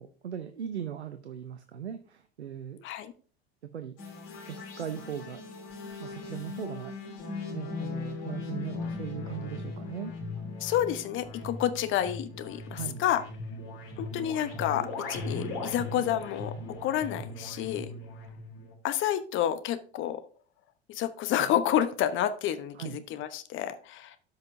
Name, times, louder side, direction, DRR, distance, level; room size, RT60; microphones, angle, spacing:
voice 1, 0.0-2.9 3.7-4.2 4.5-5.4 6.0-10.1 12.7-13.0 22.8-23.0, right 9 dB, 80° right, 10 dB, 0.7 m, -39 dB
sound 1, 4.0-18.7, left 3 dB, 55° left, 3.2 m, -39 dB
voice 2, 10.6-13.2 14.0-17.9 18.8-20.2 20.9-24.2, left 11 dB, 35° left, 11 dB, 0.9 m, -29 dB
13.0 x 5.6 x 2.6 m, 0.43 s
figure-of-eight pair, 75°, 32 cm